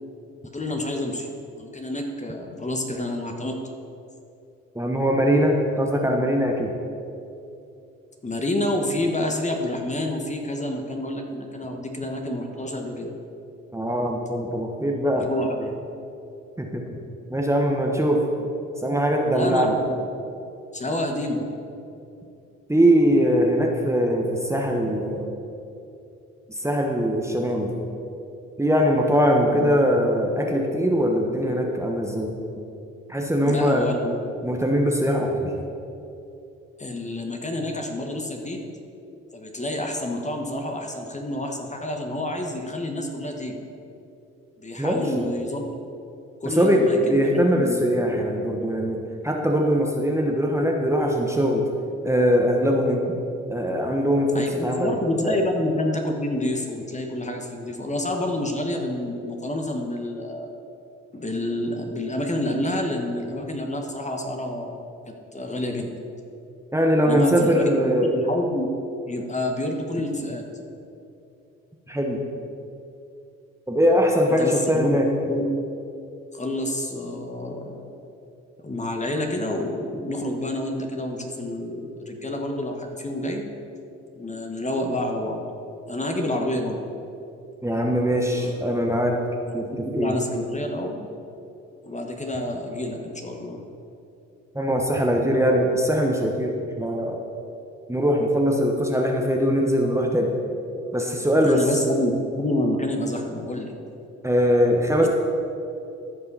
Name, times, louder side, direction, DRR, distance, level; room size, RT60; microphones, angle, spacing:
voice 1, 0.5-1.3 1.5-3.7 8.2-13.1 15.1-15.7 19.3-20.1 20.7-21.5 29.5-29.8 33.4-34.1 36.8-38.6 39.3-43.6 44.6-45.8 46.4-47.8 54.3-60.5 61.1-64.8 65.1-65.9 67.0-68.7 69.1-70.4 74.4-75.4 76.3-77.8 78.6-83.4 84.2-85.4 85.9-86.8 88.3-88.5 89.5-91.1 91.8-93.6 101.4-103.7 105.0-105.1, left 1 dB, 20° left, 3 dB, 1.3 m, -28 dB
voice 2, 4.7-6.7 13.7-15.3 16.6-17.0 17.3-18.2 18.8-19.8 22.7-25.3 26.5-27.7 28.6-32.4 33.1-33.8 34.4-35.5 44.8-45.3 46.4-49.0 49.2-51.7 52.0-53.0 53.5-55.0 55.2-55.4 66.7-68.1 71.9-72.2 73.7-75.1 87.6-89.1 89.5-90.1 94.5-97.2 97.9-100.3 100.9-101.6 104.2-105.1, equal, 10° right, 0 dB, 1.2 m, -21 dB
14.5 x 5.5 x 4.1 m, 2.7 s
hypercardioid pair, 55°, 32 cm